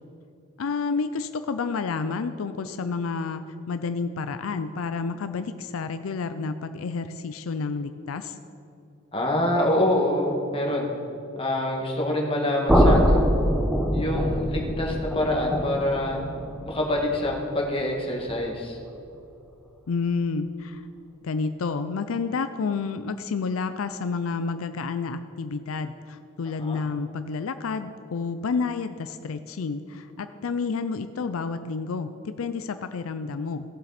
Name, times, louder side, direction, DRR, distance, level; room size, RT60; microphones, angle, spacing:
voice 1, 0.6-8.4 19.9-20.8 21.2-33.6, left 4 dB, 85° left, 10 dB, 0.5 m, -30 dB
voice 2, 9.1-10.9 11.4-13.2 13.9-16.2 16.6-18.8 26.7-26.8, left 1 dB, 25° left, -1 dB, 1.8 m, -26 dB
sound 1, 12.7-18.6, equal, ahead, 1.0 m, -24 dB
16.5 x 7.7 x 4.1 m, 2.7 s
head